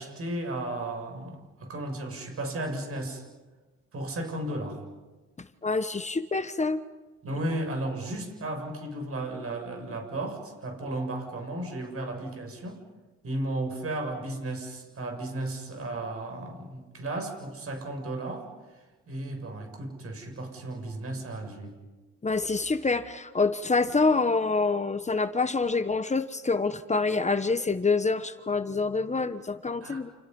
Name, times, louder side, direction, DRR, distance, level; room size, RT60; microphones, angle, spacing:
voice 1, 0.0-3.2 3.9-4.8 7.2-12.8 13.2-18.5 19.1-21.8 29.8-30.0, right 1 dB, 50° right, 4 dB, 7.2 m, -34 dB
voice 2, 5.6-6.8 22.2-30.1, left 3 dB, 25° left, 11 dB, 1.2 m, -26 dB
29.5 x 29.0 x 5.5 m, 1.3 s
cardioid pair, 90°, 30 cm